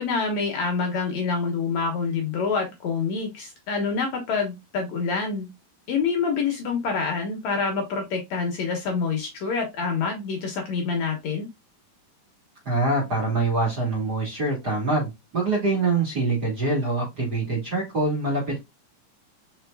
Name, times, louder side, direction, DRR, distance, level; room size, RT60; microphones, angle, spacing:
voice 1, 0.0-5.5 5.9-11.5, left 5 dB, 65° left, 2.2 m, -26 dB
voice 2, 12.6-18.6, right 2 dB, 35° right, 2.0 m, -24 dB
5.3 x 4.3 x 2.3 m
omnidirectional pair, 4.0 m